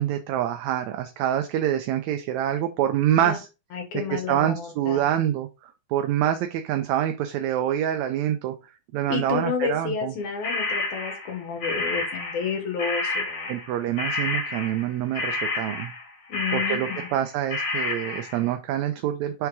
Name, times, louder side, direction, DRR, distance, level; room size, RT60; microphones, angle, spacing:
voice 1, 0.0-3.5 4.1-8.5 8.9-10.1 13.5-15.9 16.5-19.5, right 11 dB, 75° right, 1.8 m, -26 dB
voice 2, 3.7-5.0 9.1-13.5 16.3-17.1, left 6 dB, 70° left, 2.6 m, -30 dB
sound 1, 10.4-12.5 12.8-18.4, left 3 dB, 50° left, 3.2 m, -29 dB
5.9 x 3.5 x 4.6 m
omnidirectional pair, 3.6 m